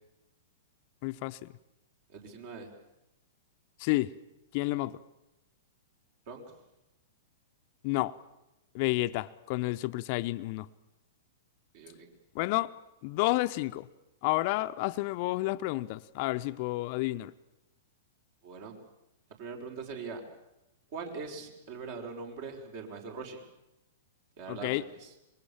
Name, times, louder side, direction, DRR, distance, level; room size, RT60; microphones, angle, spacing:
voice 1, 1.0-1.5 3.8-4.1 4.5-5.0 7.8-8.2 8.7-10.7 12.3-12.7 13.0-13.9 14.2-17.3 24.5-24.8, left 19 dB, 45° left, 0.8 m, -30 dB
voice 2, 2.1-2.7 6.3-6.4 11.7-12.1 18.4-18.8 19.4-20.2 20.9-23.4 24.4-25.1, right 4 dB, 55° right, 5.7 m, -42 dB
26.0 x 23.0 x 7.4 m
hypercardioid pair, 110°, 0 cm